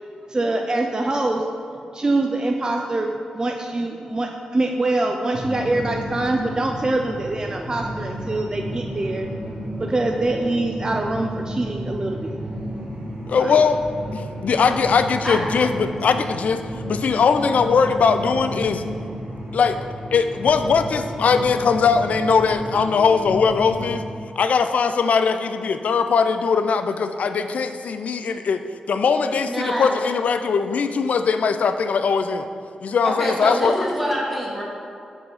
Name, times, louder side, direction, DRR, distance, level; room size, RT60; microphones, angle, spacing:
voice 1, 0.3-1.4 1.9-9.3 9.8-12.1 13.4-13.6, right 2 dB, 30° right, 2 dB, 0.4 m, -24 dB
sound 1, 5.3-24.0, equal, 65° right, 1.2 m, -32 dB
voice 2, 13.3-13.8 14.1-16.6 16.9-18.8 19.5-19.8 20.1-24.0 24.4-28.6 28.9-32.5 32.8-33.7, left 5 dB, 75° left, 9 dB, 0.3 m, -20 dB
voice 3, 29.4-29.9 33.0-34.6, equal, 5° right, -4 dB, 1.3 m, -25 dB
4.7 x 3.8 x 5.5 m, 2.5 s
cardioid pair, 60°, 2 cm